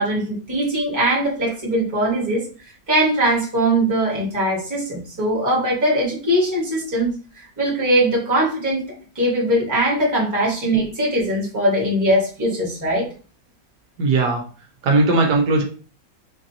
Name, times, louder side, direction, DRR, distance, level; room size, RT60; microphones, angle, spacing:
voice 1, 0.0-2.4 2.9-7.1 7.4-8.9 9.1-13.1, right 1 dB, 10° right, -5 dB, 1.1 m, -21 dB
voice 2, 14.0-14.5 14.8-15.6, right 3 dB, 75° right, 1 dB, 1.3 m, -18 dB
4.6 x 2.5 x 2.7 m, 0.38 s
omnidirectional pair, 1.9 m